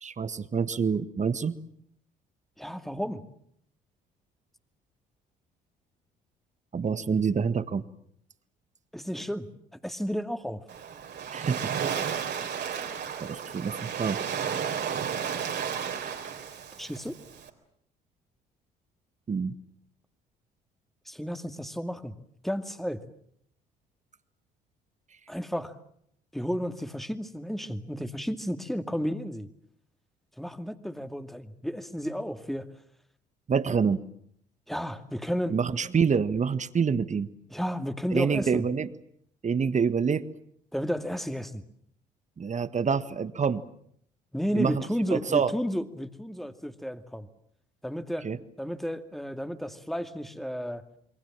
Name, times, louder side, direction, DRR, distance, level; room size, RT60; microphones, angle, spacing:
voice 1, 0.0-1.6 6.7-7.8 11.3-11.7 13.2-14.2 19.3-19.5 33.5-34.0 35.5-37.3 38.1-38.9 39.4-40.2 42.4-43.6 44.5-44.8 45.1-45.5 48.2-48.4, right 6 dB, 35° right, 14 dB, 1.5 m, -26 dB
voice 2, 2.6-3.2 8.9-9.5 9.8-10.6 16.8-17.2 21.1-22.1 22.4-23.0 25.3-25.7 26.3-29.5 30.4-32.7 34.7-35.6 37.5-38.7 40.7-41.6 44.3-47.3 47.8-48.3 48.6-50.8, equal, ahead, 8 dB, 2.4 m, -32 dB
Waves surf, 10.7-17.5, right 7 dB, 55° right, 3.7 m, -33 dB
28.0 x 23.0 x 7.5 m, 0.69 s
hypercardioid pair, 50°, 21 cm